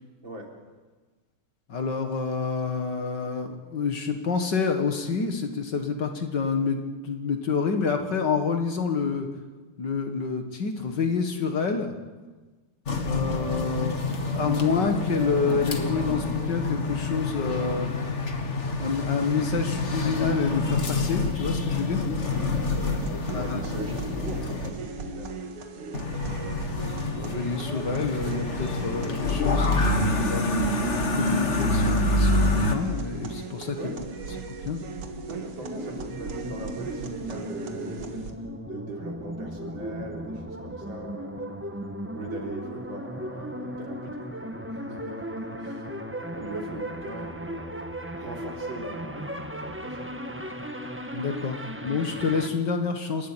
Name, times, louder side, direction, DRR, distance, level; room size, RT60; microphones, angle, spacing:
voice 1, 0.2-0.5 23.3-25.3 33.8-34.1 35.3-38.2 38.7-41.6 42.1-44.1 44.4-45.2 45.4-45.9 46.3-47.8 48.1-49.3 49.6-50.2, right 2 dB, 60° right, 0 dB, 4.4 m, -40 dB
voice 2, 1.7-6.8 7.0-9.3 9.8-12.0 13.0-14.0 14.4-17.9 18.8-22.0 23.3-23.6 27.1-33.8 34.4-34.8 51.1-53.3, left 5 dB, 55° left, 5 dB, 2.1 m, -28 dB
sound 1, 12.9-24.7 25.9-32.7, left 2 dB, 35° left, 1.7 m, -27 dB
sound 2, 22.3-38.3, right 4 dB, 85° right, 2.6 m, -37 dB
sound 3, 35.6-52.5, equal, 5° right, 1.1 m, -36 dB
28.5 x 12.5 x 9.1 m, 1.3 s
omnidirectional pair, 2.4 m